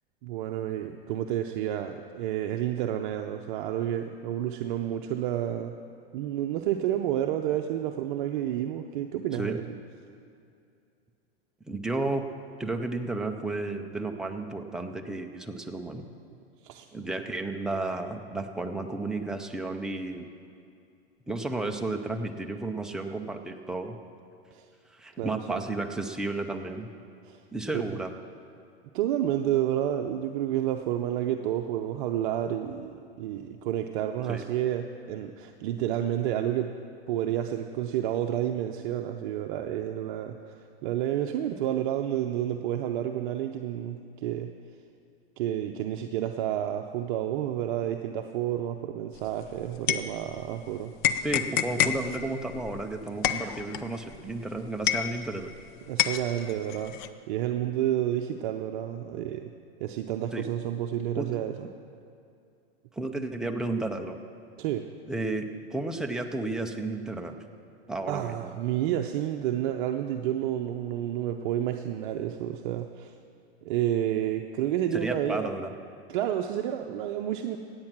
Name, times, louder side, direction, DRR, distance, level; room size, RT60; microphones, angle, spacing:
voice 1, 0.2-5.7 6.1-9.6 16.6-16.9 24.5-24.7 25.2-25.6 27.3-27.4 27.7-28.0 28.9-36.7 37.1-44.5 45.4-50.9 55.9-59.5 59.8-61.7 64.6-64.8 68.1-73.1 73.6-75.5 76.1-77.6, right 11 dB, 50° right, 4 dB, 0.7 m, -30 dB
voice 2, 11.7-12.2 12.6-16.1 16.9-20.3 21.3-24.0 24.9-26.9 27.5-28.1 34.3-34.4 51.2-55.5 60.3-60.5 61.1-61.3 62.9-64.2 65.1-67.4 67.9-68.5 74.9-75.7, right 2 dB, ahead, 3 dB, 0.4 m, -32 dB
sound 1, 49.2-50.6 51.0-55.6 56.0-57.1, left 10 dB, 45° left, 0.7 m, -29 dB
16.5 x 8.8 x 6.0 m, 2.5 s
hypercardioid pair, 140°, 32 cm